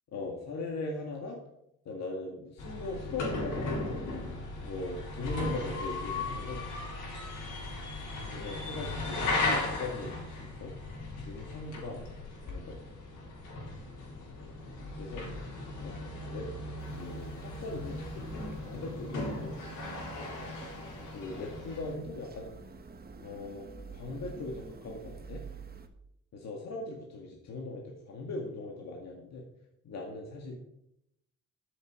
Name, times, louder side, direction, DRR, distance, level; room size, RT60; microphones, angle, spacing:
voice 1, 0.1-1.4 1.9-4.0 4.6-6.6 8.3-10.7 11.2-12.1 12.5-12.8 15.0-15.3 15.8-16.0 16.3-18.1 18.6-19.6 21.1-22.5 23.2-25.4 26.3-29.4 29.8-30.6, left 2 dB, 60° left, 0 dB, 2.1 m, -39 dB
sound 1, 2.6-21.9, left 2 dB, 80° left, 4.1 m, -37 dB
sound 2, 16.8-25.9, right 4 dB, 30° right, 1.3 m, -49 dB
12.5 x 7.3 x 5.0 m, 0.79 s
cardioid pair, 90°, 30 cm